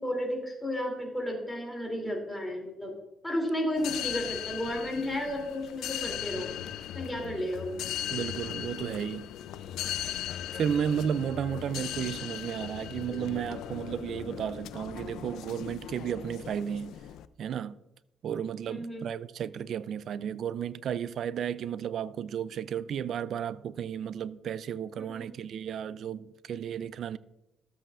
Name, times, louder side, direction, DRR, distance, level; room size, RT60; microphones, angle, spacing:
voice 1, 0.0-2.9 3.2-6.5 6.9-7.9 18.6-19.1 25.0-25.4, left 1 dB, 5° left, 2.8 m, -33 dB
sound 1, 3.8-17.3, left 11 dB, 85° left, 0.4 m, -38 dB
voice 2, 8.1-9.3 10.5-17.0 17.4-17.8 18.2-27.2, right 8 dB, 65° right, 0.3 m, -33 dB
13.5 x 7.7 x 2.4 m
cardioid pair, 90°, 0 cm